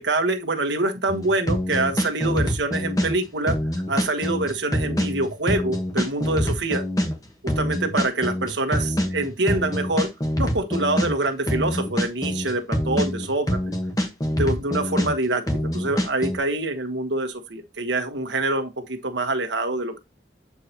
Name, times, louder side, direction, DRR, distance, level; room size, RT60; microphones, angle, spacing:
voice 1, 0.0-3.6 3.9-6.8 7.4-10.1 10.4-13.6 14.3-20.0, right 2 dB, 80° right, 1.3 m, -25 dB
sound 1, 1.1-3.1 3.5-7.1 7.5-11.1 11.5-15.1 15.5-16.4, equal, 20° left, 1.3 m, -25 dB
8.5 x 4.7 x 2.9 m
head